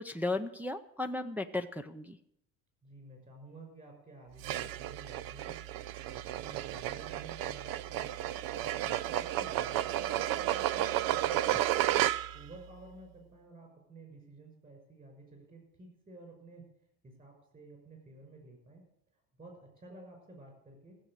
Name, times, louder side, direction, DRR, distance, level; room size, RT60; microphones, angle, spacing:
voice 1, 0.0-2.2, left 2 dB, 5° right, 3 dB, 0.5 m, -35 dB
voice 2, 2.8-5.6 6.1-8.1 8.6-12.0 12.3-16.7 17.0-18.8 19.1-21.0, right 2 dB, 25° right, 3 dB, 5.9 m, -52 dB
sound 1, 4.4-12.5, right 13 dB, 70° right, 0.6 m, -32 dB
15.5 x 7.4 x 8.7 m, 0.77 s
cardioid pair, 145°, 36 cm